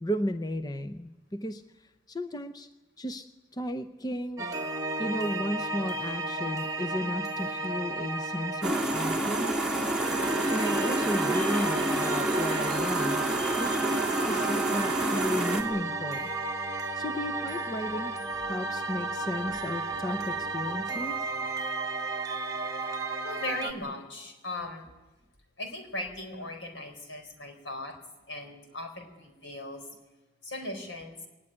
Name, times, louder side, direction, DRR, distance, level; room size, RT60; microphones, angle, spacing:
voice 1, 0.0-1.6 2.1-2.7 3.0-3.3 3.5-4.5 5.0-9.7 10.5-13.2 13.6-16.3 17.0-18.2 18.5-21.3, equal, 20° left, 10 dB, 0.7 m, -34 dB
sound 1, 4.4-23.7, right 2 dB, 20° right, 1.6 m, -34 dB
sound 2, 8.6-15.6, right 2 dB, 5° right, 2.9 m, -28 dB
voice 2, 22.9-24.8 25.6-27.9 28.3-29.8 30.4-31.2, left 2 dB, 75° left, 5 dB, 4.1 m, -38 dB
21.0 x 18.5 x 9.9 m, 1.1 s
head